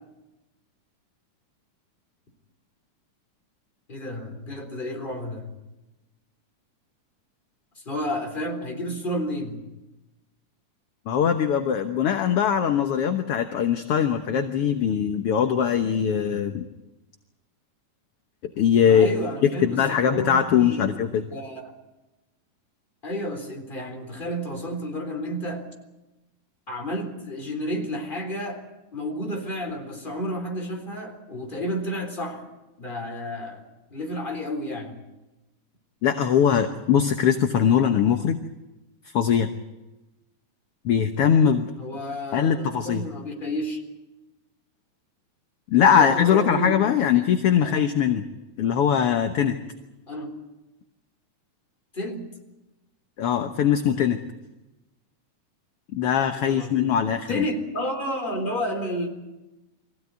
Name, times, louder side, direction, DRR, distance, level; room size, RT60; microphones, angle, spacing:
voice 1, 3.9-5.5 7.9-9.6 18.8-21.7 23.0-25.7 26.7-28.6 28.9-32.5 32.8-33.6 33.9-35.0 41.8-43.8 45.9-47.3 47.6-47.7 50.1-50.3 51.9-52.3 56.3-56.9 57.3-59.1, equal, 15° left, 3 dB, 3.9 m, -31 dB
voice 2, 11.1-16.6 18.6-19.1 19.4-21.2 36.0-38.4 39.1-39.5 40.9-41.7 42.3-43.0 45.7-48.2 48.6-49.6 53.2-54.2 55.9-57.5, left 8 dB, 60° left, 6 dB, 1.8 m, -21 dB
24.0 x 16.0 x 9.5 m, 1.0 s
omnidirectional pair, 3.5 m